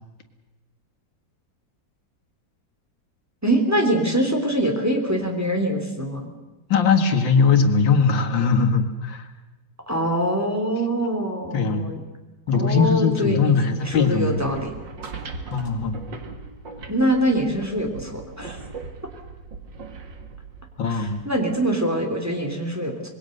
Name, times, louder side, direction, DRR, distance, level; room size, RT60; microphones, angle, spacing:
voice 1, 3.4-6.3 9.9-12.0 12.5-14.8 16.9-18.6 20.9-23.1, right 1 dB, 10° right, 2 dB, 3.2 m, -24 dB
voice 2, 6.7-9.3 11.5-11.9 12.5-14.5 15.5-16.0 20.8-21.2, left 5 dB, 85° left, 5 dB, 2.5 m, -20 dB
sound 1, 13.7-21.6, right 4 dB, 75° right, 2.6 m, -39 dB
26.0 x 21.0 x 6.6 m, 1.2 s
omnidirectional pair, 2.0 m